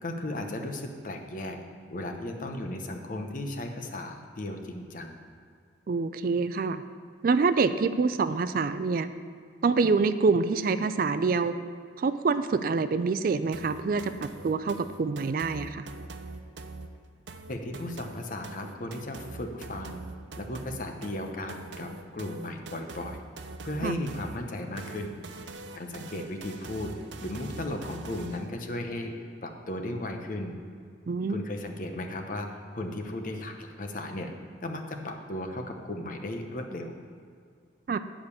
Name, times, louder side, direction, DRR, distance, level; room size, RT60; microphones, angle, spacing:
voice 1, 0.0-1.6 1.9-5.2 17.5-20.0 20.4-23.2 23.6-26.9 27.2-30.6 31.3-34.3 34.6-36.9, left 1 dB, 45° left, 4 dB, 0.9 m, -36 dB
voice 2, 5.9-6.8 7.2-9.1 9.6-11.6 12.0-15.9 23.8-24.0 31.1-31.4 37.9-38.0, right 4 dB, 50° right, 12 dB, 0.3 m, -26 dB
sound 1, 13.5-28.5, right 3 dB, 75° right, 0.7 m, -43 dB
10.5 x 5.1 x 6.9 m, 2.2 s
head